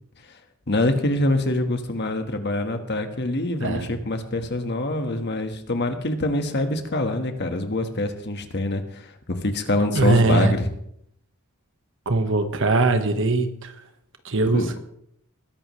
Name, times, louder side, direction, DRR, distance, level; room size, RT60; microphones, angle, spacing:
voice 1, 0.7-10.7 14.5-14.7, left 1 dB, 50° left, 6 dB, 1.4 m, -25 dB
voice 2, 3.6-3.9 9.9-10.5 12.0-13.7 14.2-14.6, right 3 dB, 60° right, 8 dB, 1.3 m, -20 dB
20.5 x 11.0 x 3.2 m, 0.72 s
head